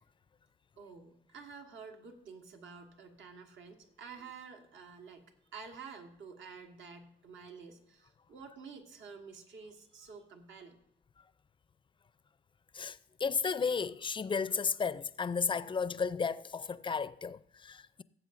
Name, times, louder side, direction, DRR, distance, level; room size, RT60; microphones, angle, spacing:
voice 1, 0.8-5.2 5.5-10.8, right 5 dB, 75° right, 1.4 m, -50 dB
voice 2, 12.7-18.0, left 5 dB, 25° left, 0.4 m, -33 dB
17.5 x 7.8 x 2.6 m
cardioid pair, 90°, 20 cm